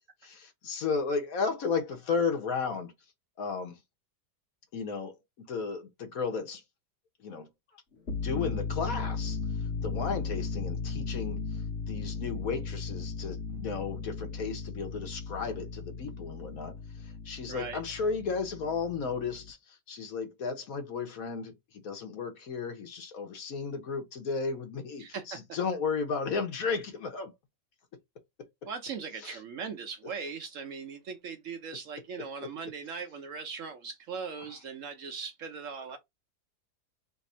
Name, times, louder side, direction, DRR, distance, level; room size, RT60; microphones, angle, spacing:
voice 1, 0.2-2.9 3.4-3.8 4.7-6.6 7.2-7.5 8.2-9.4 9.8-11.6 11.9-27.3 29.2-29.4, left 5 dB, 60° left, 1.3 m, -34 dB
sound 1, 8.0-19.5, left 4 dB, 45° left, 1.2 m, -36 dB
voice 2, 17.5-17.8 25.0-25.6 28.6-36.0, right 5 dB, 65° right, 0.9 m, -39 dB
3.3 x 2.6 x 4.2 m
omnidirectional pair, 1.7 m